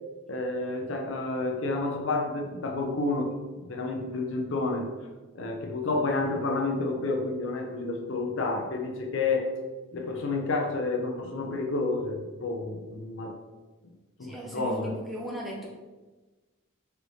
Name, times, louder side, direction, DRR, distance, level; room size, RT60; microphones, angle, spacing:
voice 1, 0.3-3.3 3.7-4.9 5.4-9.5 9.9-13.4 14.2-14.9, left 3 dB, 60° left, 2 dB, 0.5 m, -30 dB
voice 2, 14.2-15.7, equal, ahead, -4 dB, 0.6 m, -37 dB
4.0 x 3.2 x 3.1 m, 1.2 s
head